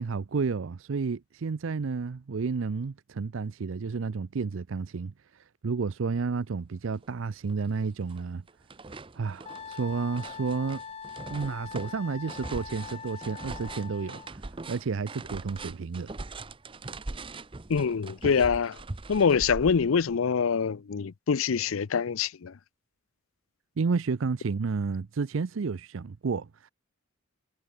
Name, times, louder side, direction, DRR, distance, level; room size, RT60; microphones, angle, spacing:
voice 1, 0.0-8.4 9.2-10.8 11.3-16.1 23.8-26.7, right 4 dB, 70° right, 0.5 m, -31 dB
sound 1, 7.0-7.1 7.5-8.2 8.5-20.1, right 2 dB, 25° right, 0.7 m, -41 dB
Wind instrument woodwind instrument, 9.5-14.3, left 6 dB, 30° left, 0.5 m, -42 dB
voice 2, 17.7-18.8 19.1-22.5, left 6 dB, 80° left, 0.5 m, -25 dB
head